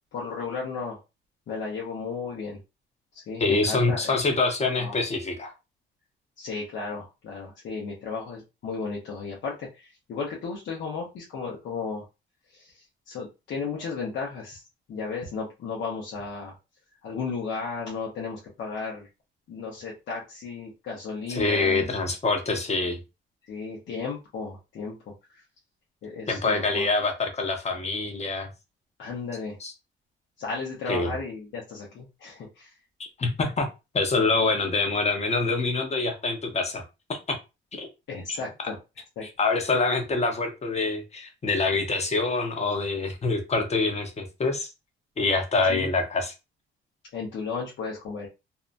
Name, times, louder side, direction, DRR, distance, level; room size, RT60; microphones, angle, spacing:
voice 1, 0.1-1.0 1.5-2.6 3.1-4.2 4.8-5.0 6.4-12.0 12.5-14.6 14.9-16.5 17.0-19.1 19.5-21.9 23.5-25.1 26.0-26.9 29.0-29.6 30.4-32.7 38.1-38.8 39.2-39.3 45.7-45.9 47.1-48.3, left 4 dB, 70° left, 0.9 m, -34 dB
voice 2, 3.4-5.5 21.3-23.0 26.3-28.5 29.6-29.7 30.9-31.1 33.2-36.8 37.1-37.4 37.7-37.9 38.3-38.4 39.2-44.7 45.2-46.3, left 3 dB, 35° left, 0.8 m, -25 dB
2.7 x 2.2 x 2.6 m
cardioid pair, 90°, 20 cm